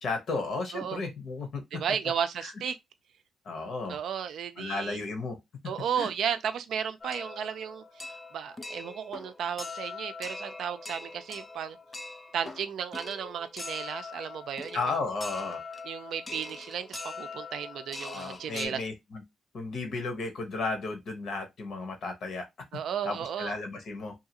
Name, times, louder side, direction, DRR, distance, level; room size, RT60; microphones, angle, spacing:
voice 1, 0.0-1.8 2.4-2.5 3.4-4.0 4.6-5.4 6.0-6.1 14.7-15.6 18.0-19.2 19.5-22.4 23.0-24.1, left 3 dB, 65° left, 0.9 m, -34 dB
voice 2, 1.7-2.8 3.9-5.0 5.6-11.8 12.3-14.8 15.8-18.8 22.7-23.5, right 8 dB, 80° right, 0.4 m, -34 dB
sound 1, 7.0-18.7, left 3 dB, 25° left, 0.4 m, -42 dB
2.7 x 2.4 x 2.8 m
cardioid pair, 120°, 0 cm